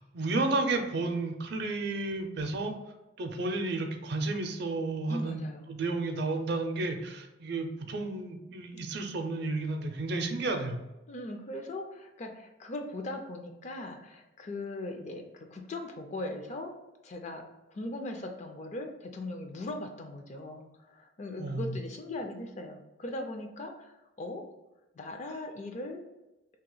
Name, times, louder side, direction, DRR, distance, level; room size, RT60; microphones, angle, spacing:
voice 1, 0.1-2.7 3.2-10.8 21.4-21.8, right 2 dB, 55° right, 5 dB, 0.5 m, -32 dB
voice 2, 5.1-5.7 11.1-16.7 17.0-24.5 24.9-26.0, left 2 dB, 35° left, 4 dB, 0.4 m, -39 dB
2.9 x 2.8 x 3.8 m, 0.99 s
head